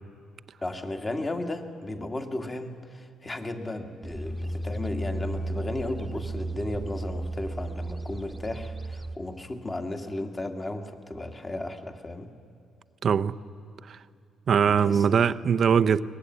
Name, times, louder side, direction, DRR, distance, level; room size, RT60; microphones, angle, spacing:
voice 1, 0.6-12.3 14.6-15.2 15.7-15.8, left 2 dB, 25° left, 2.1 m, -35 dB
sound 1, 4.0-9.2, right 2 dB, 5° right, 1.4 m, -34 dB
voice 2, 13.0-13.3 13.9-14.0 14.5-16.0, right 7 dB, 55° right, 0.7 m, -21 dB
23.0 x 19.5 x 9.9 m
cardioid pair, 90°, 0 cm